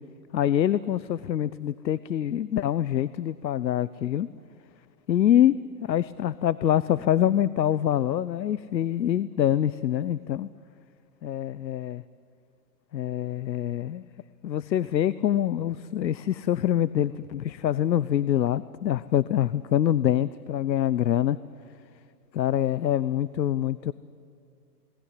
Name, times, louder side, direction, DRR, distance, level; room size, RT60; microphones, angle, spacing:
voice 1, 0.3-4.3 5.1-5.5 5.8-10.5 11.2-12.0 12.9-14.0 14.4-21.4 22.3-23.9, left 11 dB, 90° left, 17 dB, 0.8 m, -25 dB
28.0 x 19.5 x 9.8 m, 2.3 s
hypercardioid pair, 165°, 50 cm